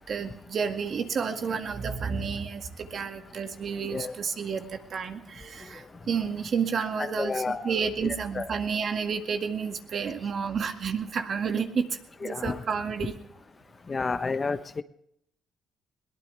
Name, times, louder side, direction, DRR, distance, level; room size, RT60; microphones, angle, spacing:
voice 1, 0.1-13.2, right 6 dB, 55° right, 6 dB, 2.0 m, -31 dB
voice 2, 3.8-4.2 7.0-7.7 8.0-8.5 12.2-12.6 13.9-14.8, left 4 dB, 30° left, 12 dB, 0.9 m, -31 dB
21.5 x 18.5 x 3.4 m, 0.74 s
cardioid pair, 90°, 0 cm